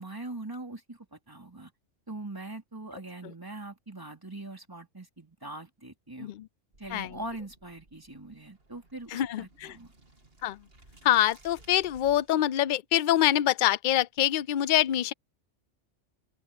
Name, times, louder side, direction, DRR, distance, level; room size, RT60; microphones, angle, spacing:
voice 1, 0.0-1.7 2.1-6.3 6.8-9.9, right 2 dB, 15° right, 3.4 m, -42 dB
sound 1, 6.7-12.4, right 2 dB, 50° right, 3.2 m, -58 dB
voice 2, 9.1-9.8 10.4-10.6 11.0-15.1, left 12 dB, 55° left, 0.6 m, -25 dB
open air
omnidirectional pair, 1.2 m